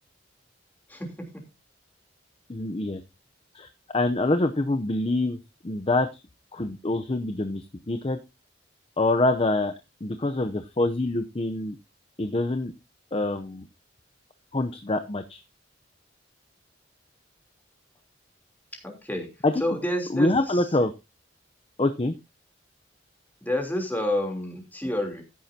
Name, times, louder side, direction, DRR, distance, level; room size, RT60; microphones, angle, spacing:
voice 1, 2.5-3.0 3.5-5.4 5.6-6.1 6.5-8.2 9.0-9.7 10.0-11.8 12.2-12.7 13.1-13.6 14.5-15.4 19.4-19.6 20.1-20.9 21.8-22.1, left 2 dB, 30° left, 8 dB, 0.7 m, -25 dB
voice 2, 18.8-19.3 19.6-20.6 23.4-25.2, left 1 dB, 10° left, 2 dB, 3.3 m, -29 dB
14.0 x 10.5 x 2.8 m, 0.26 s
head